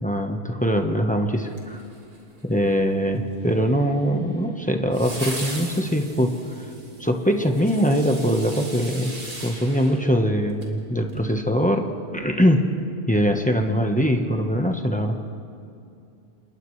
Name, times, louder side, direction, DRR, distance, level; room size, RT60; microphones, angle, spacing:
voice 1, 0.0-1.8 2.4-6.7 7.0-9.1 9.4-12.7 13.1-15.3, equal, 5° left, 3 dB, 1.1 m, -22 dB
sound 1, 1.5-2.4 4.9-10.7 11.1-11.2, right 2 dB, 55° right, 2.8 m, -38 dB
sound 2, 3.4-10.1, right 4 dB, 50° left, 6.8 m, -46 dB
29.0 x 29.0 x 3.3 m, 2.5 s
omnidirectional pair, 1.2 m